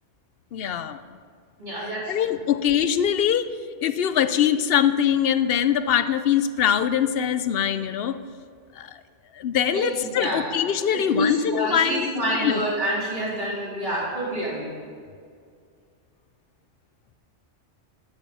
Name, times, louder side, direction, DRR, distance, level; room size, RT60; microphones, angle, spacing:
voice 1, 0.5-1.0 2.1-8.2 8.8-9.0 9.3-12.1 12.4-12.6, left 9 dB, 60° left, 12 dB, 0.7 m, -23 dB
voice 2, 1.6-2.1 9.7-10.5 10.9-14.7, equal, 40° right, -7 dB, 4.0 m, -27 dB
12.0 x 9.3 x 5.4 m, 2.2 s
omnidirectional pair, 1.2 m